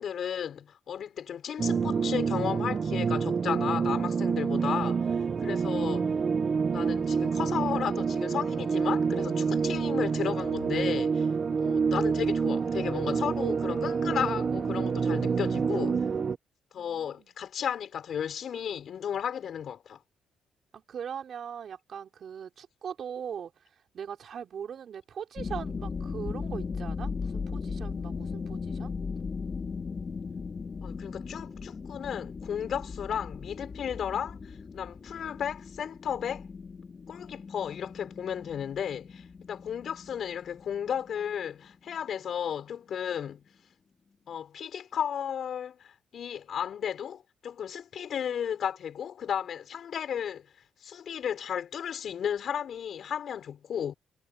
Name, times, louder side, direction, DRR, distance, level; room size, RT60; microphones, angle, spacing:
voice 1, 0.0-6.2 6.7-11.3 11.6-16.0 16.7-20.0 30.8-34.4 34.7-36.5 37.1-43.4 44.3-50.5 50.8-53.9, left 8 dB, 60° left, 5.4 m, -34 dB
sound 1, 1.6-16.4, right 5 dB, 40° right, 0.6 m, -27 dB
voice 2, 16.8-17.3 20.7-23.5 23.9-28.9, right 8 dB, 60° right, 4.1 m, -40 dB
sound 2, 25.4-41.9, left 5 dB, 40° left, 2.8 m, -38 dB
cardioid pair, 90°, 0 cm